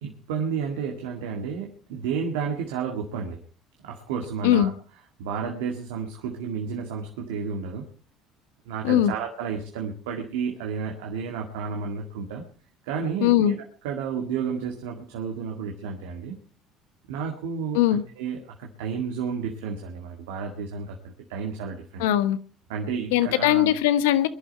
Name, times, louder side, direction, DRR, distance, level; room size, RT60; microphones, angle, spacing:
voice 1, 0.0-3.4 3.8-4.7 5.2-7.9 8.7-12.4 12.8-16.4 17.1-22.1 22.7-23.7, right 6 dB, 85° right, 2.0 m, -31 dB
voice 2, 13.2-13.6 17.7-18.0 22.0-22.4 23.1-24.3, left 12 dB, 85° left, 1.1 m, -20 dB
22.5 x 11.5 x 4.5 m
supercardioid pair, 75°, 0 cm